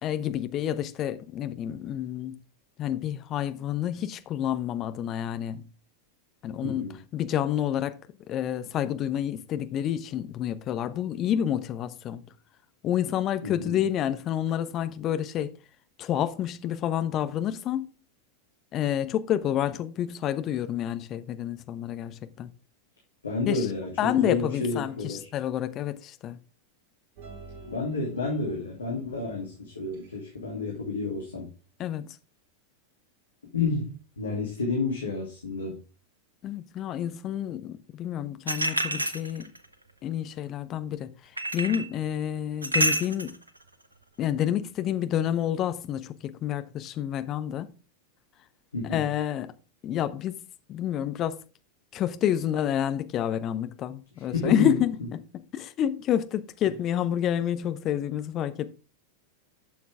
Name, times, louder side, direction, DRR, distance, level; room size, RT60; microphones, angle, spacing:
voice 1, 0.0-2.4 2.8-5.7 6.4-6.9 7.1-8.0 8.3-12.2 12.8-15.5 16.0-17.9 18.7-22.5 23.5-23.7 24.0-26.4 31.8-32.2 36.4-39.5 40.0-43.4 44.2-47.7 48.9-49.5 49.8-51.4 51.9-55.2 55.5-58.7, left 10 dB, 35° left, 1.1 m, -29 dB
voice 2, 6.6-7.0 13.4-13.8 23.2-25.3 27.7-31.5 33.5-35.8 48.7-49.0 54.3-54.8, left 3 dB, 75° left, 3.3 m, -30 dB
sound 1, 27.2-29.5 29.9-30.3, right 3 dB, 50° right, 2.6 m, -49 dB
sound 2, 38.5-39.7 41.4-41.9 42.6-43.4, right 1 dB, 80° right, 1.2 m, -27 dB
12.0 x 7.2 x 3.6 m
figure-of-eight pair, 90°, 0 cm